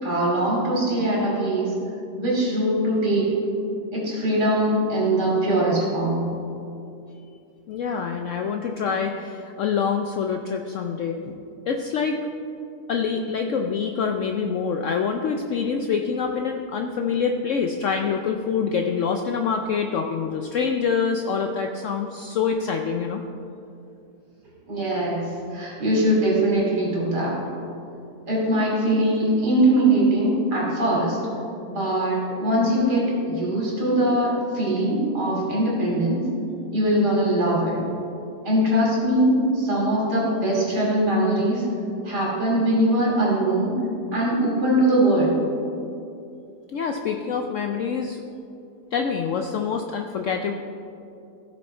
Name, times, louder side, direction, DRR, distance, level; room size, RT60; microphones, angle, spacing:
voice 1, 0.0-1.7 2.2-3.3 3.9-6.3 24.7-27.4 28.3-31.2 31.7-36.2 36.7-37.8 38.4-41.7 42.0-43.7 44.1-45.4, right 1 dB, 80° right, -4 dB, 3.3 m, -21 dB
voice 2, 7.7-12.2 12.9-23.2 46.7-48.2 48.9-50.5, left 6 dB, 65° left, 4 dB, 0.8 m, -26 dB
15.5 x 6.5 x 4.3 m, 2.7 s
omnidirectional pair, 1.7 m